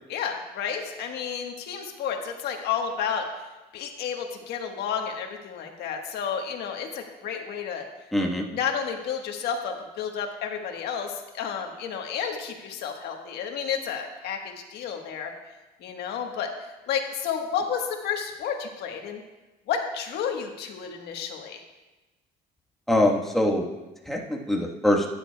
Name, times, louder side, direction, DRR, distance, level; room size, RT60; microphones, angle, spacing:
voice 1, 0.1-3.3 3.7-7.9 8.5-15.3 15.8-16.5 16.9-19.2 19.7-21.6, left 7 dB, 75° left, 3 dB, 1.4 m, -31 dB
voice 2, 8.1-8.4 22.9-23.7 24.1-25.1, left 1 dB, ahead, -1 dB, 1.3 m, -23 dB
13.0 x 9.9 x 2.3 m, 1.1 s
cardioid pair, 110°, 17 cm